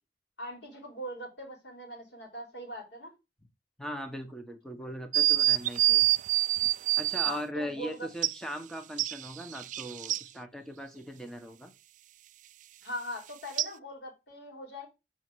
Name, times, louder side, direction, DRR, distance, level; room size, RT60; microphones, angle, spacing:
voice 1, 0.4-3.1 7.2-8.1 12.8-14.9, equal, 75° left, 1 dB, 3.8 m, -41 dB
voice 2, 3.8-6.1 7.0-11.7, equal, 5° left, 5 dB, 1.2 m, -39 dB
sound 1, 5.1-7.4 8.2-8.3 9.0-10.2 13.6-13.7, right 15 dB, 45° right, 0.3 m, -26 dB
6.3 x 4.5 x 6.3 m, 0.25 s
head